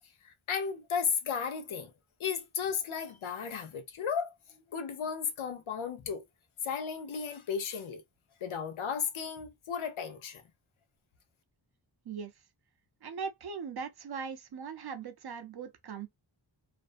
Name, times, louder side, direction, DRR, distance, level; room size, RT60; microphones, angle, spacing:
voice 1, 0.2-1.9 2.2-4.3 4.7-6.2 6.6-8.0 8.4-10.4, left 6 dB, 90° left, 0.6 m, -34 dB
voice 2, 13.0-16.1, right 6 dB, 55° right, 0.5 m, -40 dB
2.5 x 2.1 x 2.4 m
wide cardioid pair, 65°, 47 cm